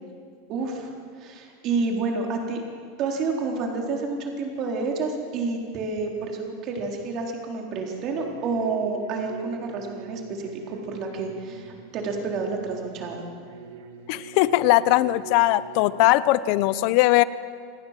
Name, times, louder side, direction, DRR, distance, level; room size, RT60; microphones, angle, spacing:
voice 1, 0.5-0.9 1.2-2.6 3.0-13.2, right 4 dB, 35° right, 1 dB, 4.0 m, -29 dB
sound 1, 8.1-16.1, right 7 dB, 75° right, 1.9 m, -43 dB
voice 2, 14.1-17.2, left 17 dB, 50° left, 16 dB, 0.8 m, -20 dB
28.0 x 18.0 x 7.6 m, 2.1 s
supercardioid pair, 160°, 0 cm